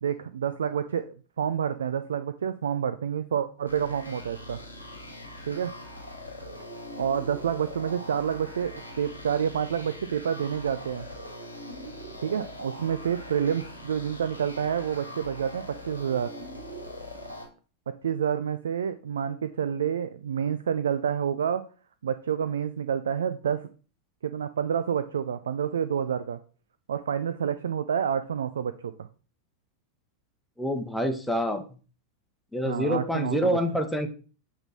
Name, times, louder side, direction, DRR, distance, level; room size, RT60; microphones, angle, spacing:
voice 1, 0.0-4.6 5.5-5.7 7.0-11.1 12.2-16.3 17.9-21.6 22.0-23.7 24.2-26.4 26.9-29.1 32.6-33.6, right 8 dB, 65° right, 12 dB, 0.4 m, -28 dB
sound 1, 3.7-17.5, left 1 dB, 90° left, 1.8 m, -42 dB
voice 2, 30.6-31.6 32.5-34.1, equal, ahead, 5 dB, 1.1 m, -27 dB
7.9 x 3.6 x 4.2 m, 0.37 s
figure-of-eight pair, 90°, 0 cm